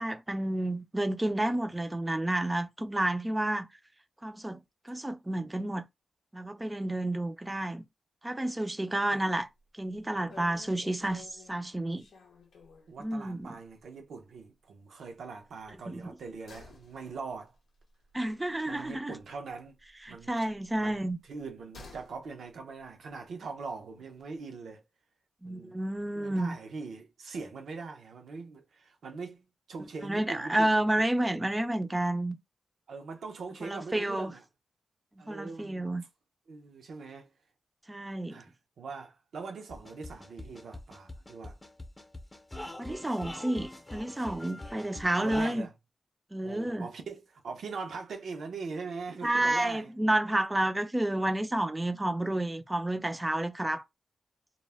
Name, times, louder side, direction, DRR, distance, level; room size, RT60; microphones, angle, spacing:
voice 1, 0.0-3.7 4.2-5.8 6.3-7.8 8.2-9.5 9.8-12.1 13.0-13.5 15.9-16.1 18.1-19.1 20.0-21.2 25.4-26.6 30.0-32.4 33.6-34.3 35.3-36.0 37.9-38.4 42.8-45.7 46.3-46.9 49.2-53.8, right 1 dB, 20° right, 0.4 m, -30 dB
sound 1, 9.4-9.7 9.9-10.0 10.3-13.0 13.4-13.5 13.8-13.9 15.6-19.5 19.8-22.2 22.5-22.6, left 4 dB, 85° left, 0.6 m, -53 dB
voice 2, 12.9-17.5 18.7-19.8 20.1-20.3 20.8-24.8 25.4-25.7 26.1-30.8 32.9-34.4 35.2-35.9 36.5-37.3 38.3-38.5 38.8-41.6 45.2-45.7 46.4-49.9, right 4 dB, 80° right, 0.6 m, -42 dB
sound 2, 39.7-45.5, left 1 dB, 25° left, 0.7 m, -44 dB
2.2 x 2.0 x 3.3 m
cardioid pair, 50°, 0 cm